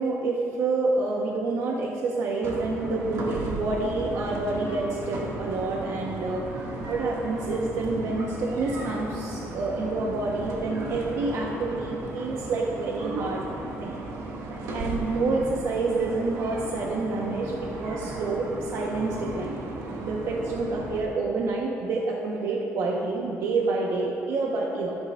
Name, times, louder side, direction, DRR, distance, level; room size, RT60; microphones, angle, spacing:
voice 1, 0.0-6.4 6.9-13.4 13.8-14.0 14.7-17.5 17.8-19.6 20.0-25.0, right 3 dB, 65° right, -2 dB, 1.3 m, -28 dB
sound 1, 2.4-21.0, right 2 dB, 80° right, 2.2 m, -35 dB
26.0 x 10.0 x 2.6 m, 2.7 s
cardioid pair, 150°, 6 cm